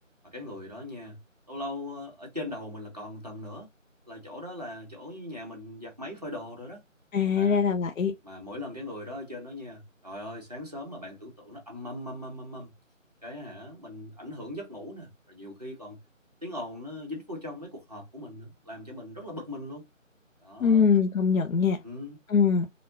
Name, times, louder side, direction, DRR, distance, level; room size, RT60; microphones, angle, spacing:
voice 1, 0.2-1.2 1.5-3.7 4.1-6.8 7.3-7.6 8.2-12.7 13.2-16.0 16.4-19.8 20.4-20.8 21.8-22.2, left 1 dB, 30° right, 0.9 m, -40 dB
voice 2, 7.1-8.1 20.6-21.8 22.3-22.7, left 6 dB, 90° left, 0.6 m, -23 dB
4.0 x 2.2 x 2.7 m
figure-of-eight pair, 175°, 40 cm